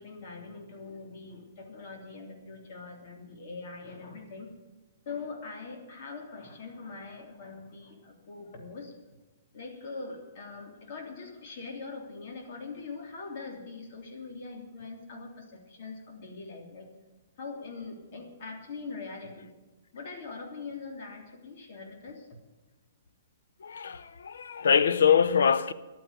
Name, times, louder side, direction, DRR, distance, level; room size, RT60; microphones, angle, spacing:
voice 1, 0.0-4.5 5.0-8.9 9.5-16.9 17.4-19.5 19.9-22.3, left 4 dB, 45° left, 3.2 m, -42 dB
voice 2, 23.6-25.7, left 7 dB, 90° left, 0.8 m, -24 dB
12.0 x 9.5 x 8.2 m
hypercardioid pair, 170°, 0 cm